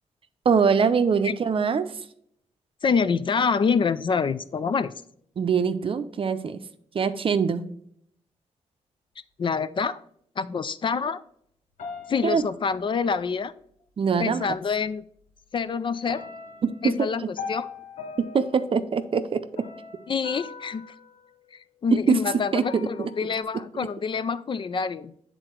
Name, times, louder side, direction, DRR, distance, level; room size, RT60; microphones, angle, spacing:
voice 1, 0.4-1.9 5.4-6.6 6.9-7.7 12.2-12.4 14.0-14.5 16.6-16.9 18.3-19.4 21.9-22.2 22.5-23.1, right 6 dB, 50° right, 10 dB, 0.6 m, -23 dB
voice 2, 2.8-4.9 9.4-10.0 10.4-11.2 12.1-13.5 14.2-15.0 15.5-16.3 16.8-17.7 20.1-20.9 21.5-25.1, left 5 dB, 45° left, 14 dB, 0.4 m, -26 dB
sound 1, 11.8-13.3 14.4-14.5 15.0-15.6 16.1-22.0 22.6-23.4, left 5 dB, 75° left, 0.9 m, -41 dB
8.1 x 3.8 x 4.5 m, 0.68 s
cardioid pair, 90°, 12 cm